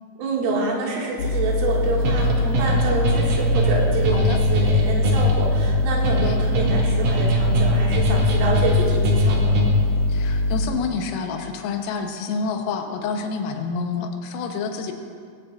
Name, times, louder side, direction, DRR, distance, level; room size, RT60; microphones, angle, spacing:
voice 1, 0.2-9.6, right 3 dB, 80° right, -3 dB, 4.6 m, -26 dB
sound 1, 1.2-10.7, left 1 dB, 45° left, 2.0 m, -23 dB
sound 2, 2.0-10.0, left 1 dB, 55° right, 2.5 m, -22 dB
voice 2, 4.1-4.4 6.0-6.4 10.1-14.9, left 5 dB, 90° left, 4 dB, 3.7 m, -28 dB
19.5 x 16.0 x 2.5 m, 2.2 s
omnidirectional pair, 5.8 m